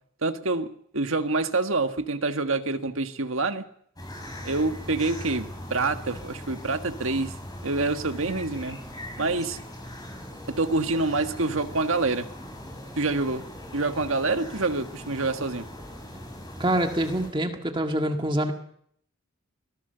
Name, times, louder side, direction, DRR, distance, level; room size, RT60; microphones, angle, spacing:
voice 1, 0.2-3.6 4.4-7.3 7.6-8.8 9.2-9.6 10.5-12.3 13.0-13.4 13.7-15.6, right 3 dB, 70° right, 7 dB, 1.7 m, -26 dB
sound 1, 4.0-17.3, left 1 dB, 15° left, 6.1 m, -40 dB
voice 2, 16.6-18.5, right 1 dB, 20° right, 4 dB, 1.8 m, -25 dB
25.0 x 18.5 x 6.8 m, 0.65 s
head